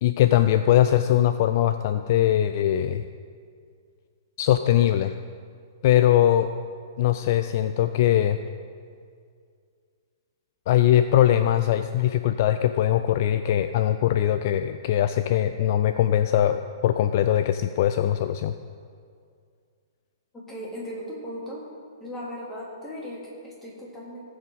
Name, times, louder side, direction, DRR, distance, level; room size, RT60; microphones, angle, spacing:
voice 1, 0.0-3.0 4.4-5.2 5.8-6.5 7.0-8.4 10.7-18.5, left 11 dB, 45° left, 10 dB, 0.4 m, -21 dB
voice 2, 20.3-21.7 22.0-24.2, equal, 10° left, -5 dB, 3.2 m, -37 dB
18.0 x 7.8 x 4.0 m, 2.2 s
figure-of-eight pair, 115°, 2 cm